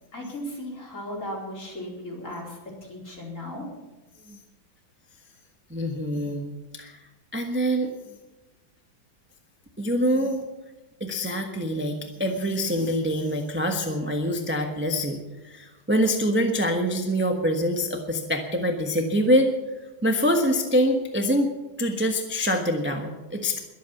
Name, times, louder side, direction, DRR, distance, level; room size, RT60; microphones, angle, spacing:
voice 1, 0.1-3.6, left 1 dB, 40° left, -2 dB, 4.7 m, -36 dB
voice 2, 5.7-6.4 6.7-7.0 7.3-7.9 9.8-10.5 11.0-15.2 15.4-19.5 20.0-21.5 21.8-23.6, equal, 5° right, 3 dB, 1.0 m, -25 dB
21.5 x 8.4 x 7.2 m, 1.1 s
omnidirectional pair, 2.1 m